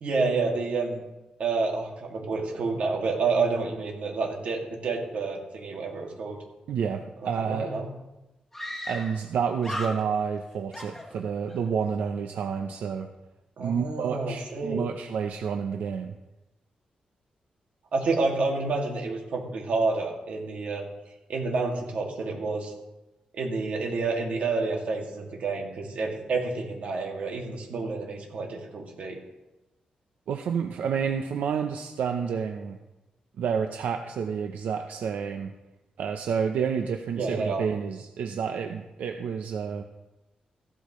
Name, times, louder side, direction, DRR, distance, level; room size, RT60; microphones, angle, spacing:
voice 1, 0.0-1.0 1.4-6.4 7.2-7.9 13.6-14.9 17.9-20.8 21.3-22.7 23.3-29.2 37.2-37.6, right 3 dB, 60° right, 0 dB, 2.3 m, -29 dB
voice 2, 6.7-7.7 8.9-13.1 13.6-16.1 30.3-32.8 33.4-35.5 36.0-39.8, right 6 dB, 90° right, 5 dB, 0.7 m, -29 dB
Screaming, 8.5-9.3 9.6-10.4 10.7-11.6, left 1 dB, 10° left, 1.2 m, -37 dB
15.0 x 12.0 x 3.2 m, 1.0 s
wide cardioid pair, 160°, 3 cm